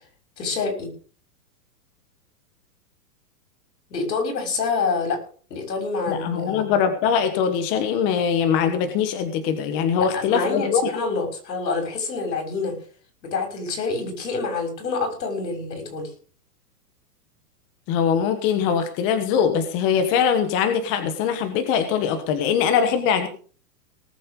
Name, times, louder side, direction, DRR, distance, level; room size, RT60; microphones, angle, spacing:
voice 1, 0.4-0.9 3.9-5.2 5.5-6.6 10.0-12.8 13.2-16.1, left 4 dB, 80° left, 4 dB, 6.6 m, -27 dB
voice 2, 6.1-10.8 17.9-23.3, left 7 dB, 25° left, 8 dB, 1.3 m, -22 dB
19.0 x 7.8 x 5.3 m, 0.41 s
hypercardioid pair, 160°, 49 cm